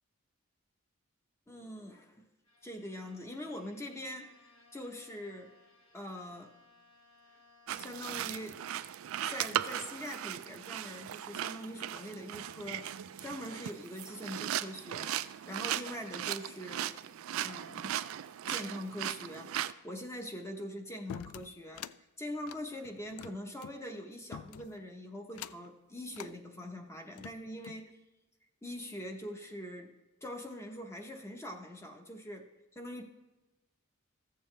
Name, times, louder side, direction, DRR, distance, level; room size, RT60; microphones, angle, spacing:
voice 1, 1.5-2.2 2.6-5.6 5.9-6.5 7.7-8.6 9.2-12.9 13.2-15.1 15.5-17.0 17.4-18.0 18.5-27.9 28.6-29.9 30.2-33.0, equal, 15° left, 4 dB, 0.8 m, -43 dB
Bowed string instrument, 2.4-8.5, left 3 dB, 70° left, 1.5 m, -64 dB
sound 1, 7.7-19.7, right 11 dB, 70° right, 0.3 m, -38 dB
sound 2, 21.1-22.0 22.4-23.8 24.3-24.8 25.3-25.7 26.1-26.3 26.9-27.8, left 9 dB, 90° left, 0.3 m, -46 dB
14.5 x 7.0 x 3.2 m, 1.1 s
head